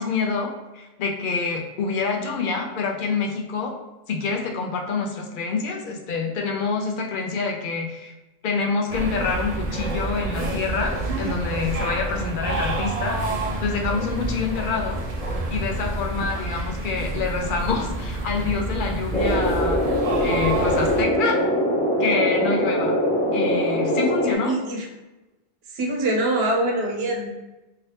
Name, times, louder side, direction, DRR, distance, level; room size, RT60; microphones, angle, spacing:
voice 1, 0.0-3.7 4.1-8.1 8.4-13.2 13.6-15.0 15.5-19.9 20.2-21.4 22.0-22.9 23.3-24.5, left 4 dB, 60° left, 1 dB, 0.6 m, -26 dB
sound 1, 8.9-21.0, right 2 dB, 50° right, 0.4 m, -28 dB
sound 2, 19.1-24.3, equal, 10° left, 0.4 m, -22 dB
voice 2, 24.2-24.9 25.7-27.3, right 1 dB, 75° right, 0 dB, 0.9 m, -24 dB
2.8 x 2.8 x 3.2 m, 1.0 s
omnidirectional pair, 1.1 m